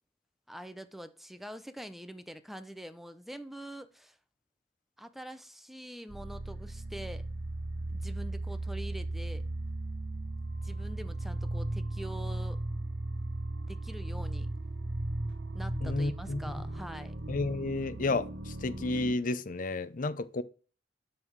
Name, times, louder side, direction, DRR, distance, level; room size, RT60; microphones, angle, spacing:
voice 1, 0.5-4.2 5.0-7.3 7.9-9.4 10.6-12.9 13.7-14.5 15.5-17.2, equal, ahead, 0.7 m, -45 dB
sound 1, 6.1-19.1, right 2 dB, 85° right, 1.2 m, -36 dB
voice 2, 15.8-16.4 17.3-18.3 18.6-20.4, left 2 dB, 50° left, 0.6 m, -31 dB
8.1 x 5.5 x 4.7 m
head